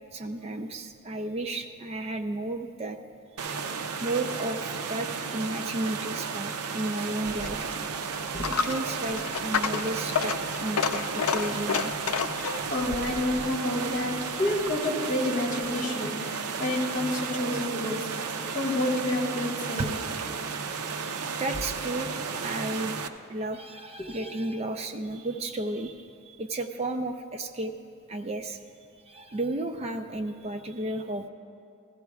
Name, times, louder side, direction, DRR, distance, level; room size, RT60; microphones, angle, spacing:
voice 1, 0.1-3.0 3.8-7.7 8.5-10.3 10.6-11.9 19.8-19.9 20.8-22.1 22.4-23.0 23.3-27.7 28.1-28.6 29.1-31.3, right 2 dB, 30° right, 6 dB, 0.4 m, -33 dB
sound 1, 3.4-23.1, right 5 dB, 85° right, 0.6 m, -33 dB
Coin (dropping), 7.2-14.7, left 6 dB, 75° left, 0.5 m, -31 dB
voice 2, 12.3-20.0 24.1-24.2, left 1 dB, 35° left, -2 dB, 1.5 m, -29 dB
15.5 x 15.0 x 2.3 m, 2.5 s
head